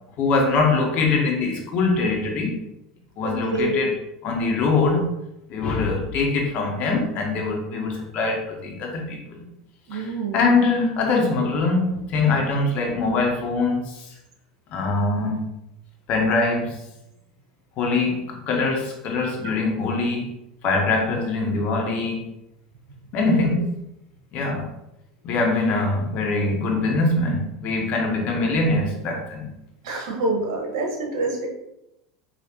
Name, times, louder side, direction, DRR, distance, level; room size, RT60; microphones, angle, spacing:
voice 1, 0.2-2.6 3.2-3.9 4.2-5.1 5.5-9.5 9.9-14.1 14.7-15.5 16.1-16.8 17.8-20.3 20.6-22.3 23.1-23.7 24.3-24.7 25.2-29.5, left 3 dB, 50° left, 0 dB, 1.3 m, -23 dB
voice 2, 3.2-3.9 9.9-10.6 23.2-23.5 29.8-31.5, right 2 dB, 70° right, 0 dB, 1.5 m, -27 dB
5.2 x 3.0 x 3.0 m, 0.85 s
hypercardioid pair, 85°, 3 cm